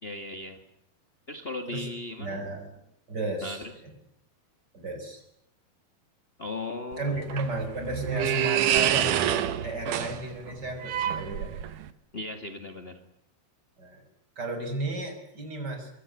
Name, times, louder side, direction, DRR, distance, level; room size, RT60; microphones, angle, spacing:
voice 1, 0.0-0.6 1.3-2.4 3.4-3.7 6.4-7.3 12.1-13.0, left 2 dB, 50° left, 6 dB, 0.6 m, -37 dB
voice 2, 2.2-2.6 3.1-3.6 4.7-5.2 7.0-11.7 13.8-14.0 14.4-15.9, right 2 dB, 25° right, 5 dB, 6.5 m, -33 dB
sound 1, 6.9-11.9, right 11 dB, 65° right, 2.6 m, -27 dB
25.0 x 24.0 x 9.9 m, 0.76 s
omnidirectional pair, 4.5 m